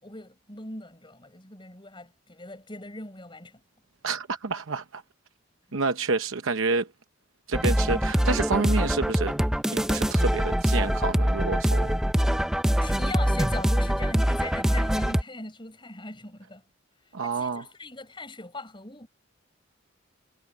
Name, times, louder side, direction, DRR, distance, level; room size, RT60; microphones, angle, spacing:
voice 1, 0.0-3.6 12.8-16.6 17.2-19.1, left 2 dB, 25° left, 6.6 m, -40 dB
voice 2, 4.0-5.0 5.7-6.9 7.5-9.4 9.7-12.0 17.1-17.6, right 4 dB, 70° right, 0.9 m, -28 dB
sound 1, 7.5-15.2, equal, 5° right, 0.4 m, -24 dB
head